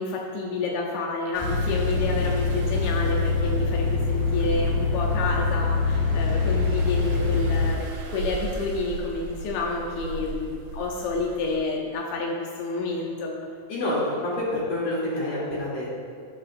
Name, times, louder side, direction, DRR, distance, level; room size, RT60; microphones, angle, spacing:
voice 1, 0.0-13.5, left 3 dB, 75° left, -1 dB, 1.7 m, -29 dB
sound 1, 1.3-11.6, right 4 dB, 70° right, 2.4 m, -38 dB
sound 2, 1.4-7.7, left 4 dB, 15° left, 0.7 m, -24 dB
voice 2, 13.7-16.0, left 1 dB, 50° left, -7 dB, 3.6 m, -27 dB
18.0 x 6.8 x 2.6 m, 2.2 s
omnidirectional pair, 4.1 m